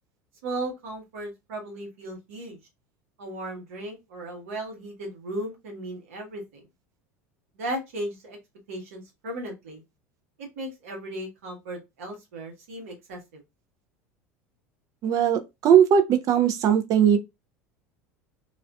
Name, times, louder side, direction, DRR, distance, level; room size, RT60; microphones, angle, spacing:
voice 1, 0.4-2.6 3.2-6.6 7.6-8.4 8.7-9.8 10.4-13.4, right 1 dB, 75° right, 1.0 m, -36 dB
voice 2, 15.0-17.2, right 8 dB, 45° right, 0.5 m, -19 dB
2.4 x 2.2 x 2.3 m
hypercardioid pair, 80°, 8 cm